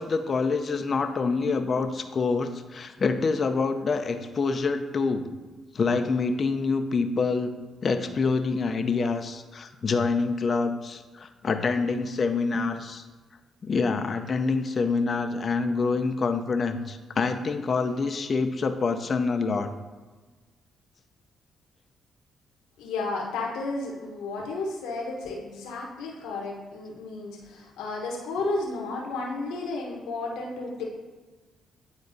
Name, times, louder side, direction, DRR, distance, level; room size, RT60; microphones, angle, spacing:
voice 1, 0.0-5.3 5.7-7.5 7.8-13.0 13.6-19.7, left 4 dB, 50° left, 7 dB, 0.6 m, -26 dB
voice 2, 22.8-30.8, left 3 dB, 85° left, -1 dB, 1.1 m, -32 dB
9.7 x 4.0 x 2.7 m, 1.3 s
supercardioid pair, 55°, 0 cm